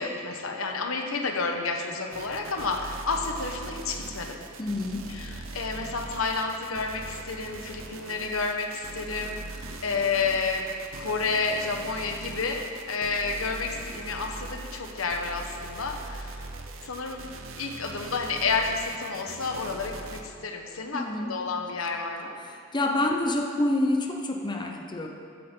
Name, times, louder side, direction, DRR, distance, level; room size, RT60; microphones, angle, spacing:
voice 1, 0.0-4.4 5.1-10.7 11.0-16.4 16.8-17.2 17.6-22.4, left 4 dB, 85° left, 3 dB, 1.2 m, -30 dB
sound 1, 2.1-20.2, right 3 dB, 70° right, 0.8 m, -41 dB
voice 2, 4.6-5.1 20.9-21.3 22.4-25.1, left 1 dB, 20° left, 2 dB, 0.8 m, -27 dB
14.5 x 9.6 x 3.9 m, 2.5 s
head